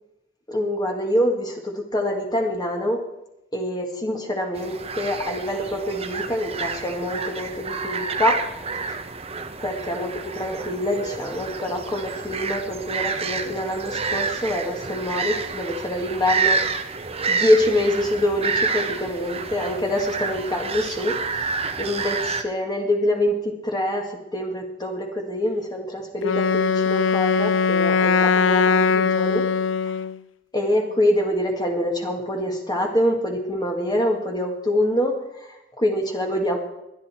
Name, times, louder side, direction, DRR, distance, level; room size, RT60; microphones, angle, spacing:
voice 1, 0.5-3.0 3.5-8.4 8.9-9.0 9.6-16.6 17.3-21.5 21.8-29.4 30.5-36.6, left 1 dB, 20° left, 1 dB, 1.9 m, -25 dB
sound 1, 4.5-22.4, right 4 dB, 30° right, 1.0 m, -29 dB
Wind instrument woodwind instrument, 26.2-30.2, left 5 dB, 80° left, 0.5 m, -20 dB
19.5 x 11.0 x 4.4 m, 0.89 s
head